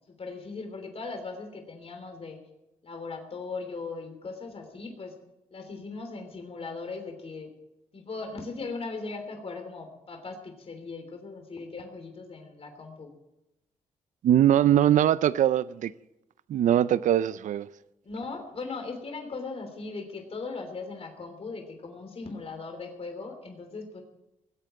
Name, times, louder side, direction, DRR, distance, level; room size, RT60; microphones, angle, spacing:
voice 1, 0.1-2.4 2.8-5.1 5.5-7.5 7.9-13.1 18.0-24.0, left 3 dB, 50° left, 3.2 m, -38 dB
voice 2, 14.2-15.9 16.5-17.7, right 11 dB, 70° right, 0.5 m, -22 dB
19.0 x 8.3 x 7.6 m
cardioid pair, 85°, 13 cm